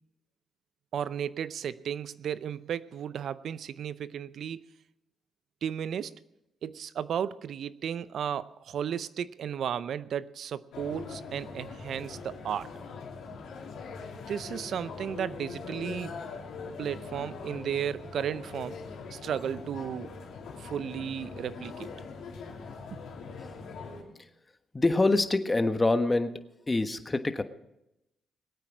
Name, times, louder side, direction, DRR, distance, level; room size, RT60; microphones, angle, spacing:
voice 1, 0.9-4.6 5.6-6.1 6.6-12.7 14.3-16.1 16.8-18.8 19.1-20.1 20.6-21.9 22.9-23.0, right 8 dB, 70° right, 16 dB, 0.6 m, -34 dB
sound 1, 10.7-24.0, left 4 dB, 80° left, 3.2 m, -42 dB
voice 2, 24.7-26.4 26.7-27.4, left 2 dB, 25° left, 9 dB, 1.3 m, -25 dB
20.5 x 8.9 x 6.1 m, 0.88 s
supercardioid pair, 60°, 0 cm